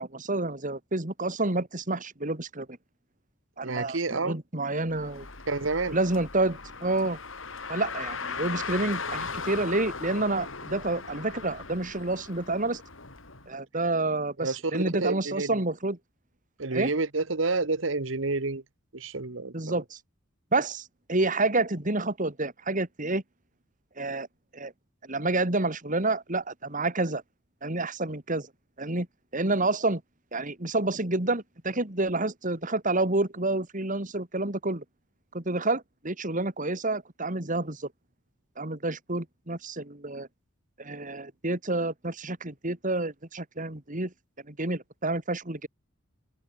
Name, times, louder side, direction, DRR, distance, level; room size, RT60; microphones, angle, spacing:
voice 1, 0.0-2.7 3.6-5.3 5.9-7.2 7.7-12.8 13.5-16.0 16.7-16.9 19.5-20.0 20.5-23.2 24.0-24.3 24.5-24.7 25.0-27.2 27.6-28.5 28.8-29.1 29.3-30.0 30.3-34.8 35.3-37.9 38.6-40.3 40.8-44.1 44.5-45.7, right 2 dB, 40° right, 2.7 m, -29 dB
voice 2, 3.6-4.4 5.5-6.0 14.4-15.5 16.6-18.6 18.9-19.8, right 3 dB, 65° right, 1.4 m, -29 dB
Car, 4.9-13.5, left 4 dB, 70° left, 4.3 m, -38 dB
head